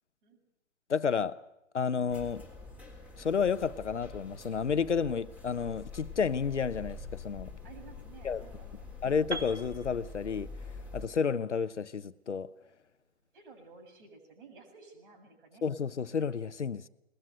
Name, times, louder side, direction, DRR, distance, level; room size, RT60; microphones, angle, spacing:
voice 1, 0.9-1.4 1.7-2.4 3.2-7.5 8.2-8.4 9.0-10.5 10.9-12.5 15.6-16.9, left 6 dB, 75° left, 1.1 m, -31 dB
sound 1, 2.1-11.1, left 3 dB, 5° right, 3.9 m, -46 dB
voice 2, 7.6-9.1 13.3-15.6, right 4 dB, 45° right, 7.6 m, -54 dB
Piano, 9.3-13.2, right 3 dB, 65° right, 2.0 m, -44 dB
21.5 x 20.5 x 8.0 m
figure-of-eight pair, 130°, 36 cm